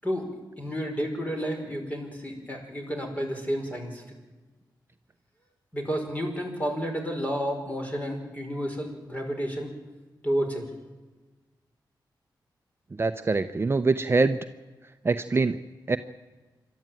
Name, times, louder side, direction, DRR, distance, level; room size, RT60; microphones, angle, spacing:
voice 1, 0.6-4.0 5.7-9.7 10.2-10.6, equal, 20° left, 3 dB, 5.1 m, -31 dB
voice 2, 13.0-14.4 15.0-15.6 15.9-16.0, right 3 dB, 30° right, 9 dB, 0.7 m, -24 dB
27.0 x 12.5 x 9.1 m, 1.2 s
wide cardioid pair, 105°, 8 cm